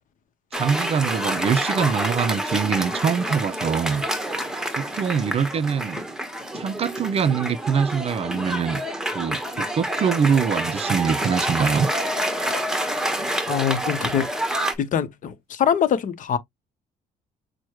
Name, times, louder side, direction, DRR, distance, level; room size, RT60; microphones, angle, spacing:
Cheering / Applause, 0.5-14.7, right 1 dB, 5° right, 1.1 m, -28 dB
voice 1, 0.5-4.1 4.8-6.0 6.5-8.8 9.1-11.9, right 6 dB, 35° right, 0.4 m, -23 dB
voice 2, 13.5-14.3 14.8-16.4, left 8 dB, 50° left, 0.8 m, -23 dB
6.2 x 2.1 x 3.0 m
cardioid pair, 110°, 17 cm